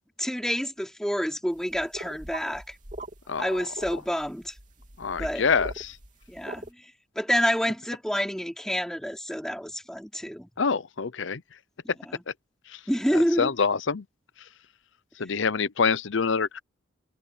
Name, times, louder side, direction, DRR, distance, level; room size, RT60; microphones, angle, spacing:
voice 1, 0.2-2.7 3.4-4.6 5.2-5.4 6.3-6.9 7.2-10.5 12.1-12.2 12.9-13.5, equal, 5° left, 3.8 m, -28 dB
sound 1, 1.6-6.7, right 1 dB, 40° right, 3.2 m, -41 dB
voice 2, 5.0-6.0 10.6-11.4 12.7-12.8 13.1-14.0 15.2-16.6, left 5 dB, 70° left, 0.7 m, -26 dB
head